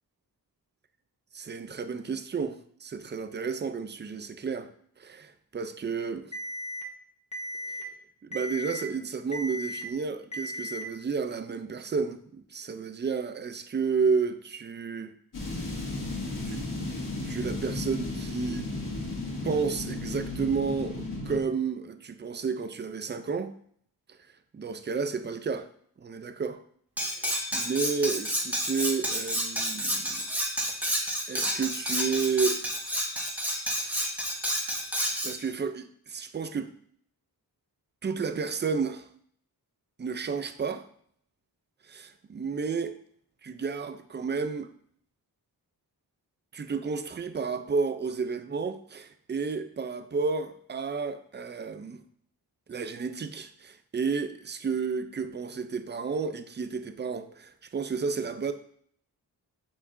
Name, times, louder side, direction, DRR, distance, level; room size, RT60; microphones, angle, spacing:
voice 1, 1.3-4.7 5.0-6.3 7.7-7.8 8.2-15.1 16.4-16.6 17.3-18.7 19.4-23.5 24.5-25.7 26.0-26.6 27.1-30.2 31.3-32.6 35.2-36.7 38.0-39.1 40.0-40.9 41.8-42.9 43.4-44.7 46.5-52.0 52.7-58.5, right 5 dB, 30° right, 0.4 m, -31 dB
Alarm, 6.3-6.8 7.3-7.8 8.3-8.8 9.3-9.8 10.3-10.8, left 1 dB, 15° left, 1.1 m, -36 dB
sound 1, 15.3-21.4, left 2 dB, 50° left, 2.3 m, -34 dB
Cutlery silverware, 27.0-35.3, equal, 5° right, 1.1 m, -30 dB
7.5 x 6.8 x 2.6 m
wide cardioid pair, 170°, 39 cm